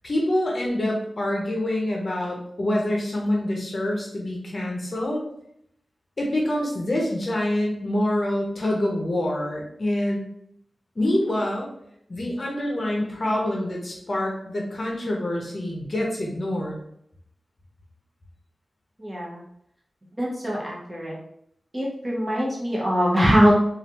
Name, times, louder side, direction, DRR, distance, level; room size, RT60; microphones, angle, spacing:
voice 1, 0.0-5.2 6.2-10.2 11.0-11.7 12.1-16.8, left 1 dB, 45° left, -1 dB, 0.7 m, -26 dB
voice 2, 19.0-19.4 20.2-21.2 21.7-23.5, equal, 20° right, -5 dB, 1.1 m, -22 dB
3.2 x 2.4 x 2.8 m, 0.73 s
wide cardioid pair, 90°, 0 cm